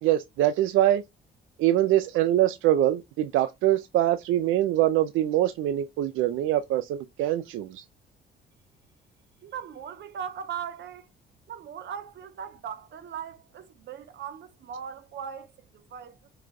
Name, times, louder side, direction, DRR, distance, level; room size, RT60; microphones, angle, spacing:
voice 1, 0.0-1.0 1.6-7.8, right 13 dB, 85° right, 0.4 m, -24 dB
voice 2, 9.4-11.1 11.5-16.3, right 8 dB, 60° right, 0.8 m, -39 dB
4.8 x 2.2 x 3.7 m
cardioid pair, 90°, 20 cm